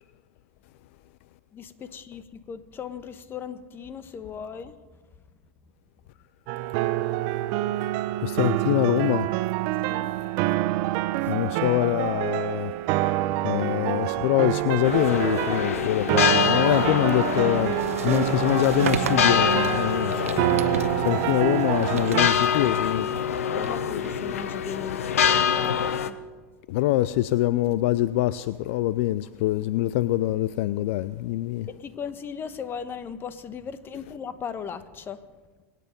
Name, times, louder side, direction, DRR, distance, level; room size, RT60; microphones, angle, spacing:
voice 1, 1.5-4.8 9.8-10.2 11.2-11.4 23.4-26.2 31.7-35.2, left 7 dB, 30° left, 1.2 m, -38 dB
sound 1, 6.5-22.3, right 16 dB, 55° right, 0.7 m, -26 dB
voice 2, 8.2-9.3 11.3-12.7 13.4-17.8 18.0-20.6 21.0-23.5 26.7-31.7, left 15 dB, 65° left, 0.4 m, -24 dB
sound 2, 14.8-26.1, left 8 dB, 85° left, 0.9 m, -26 dB
sound 3, 16.1-24.8, right 8 dB, 85° right, 1.0 m, -37 dB
25.0 x 9.3 x 5.3 m
hypercardioid pair, 100°, 7 cm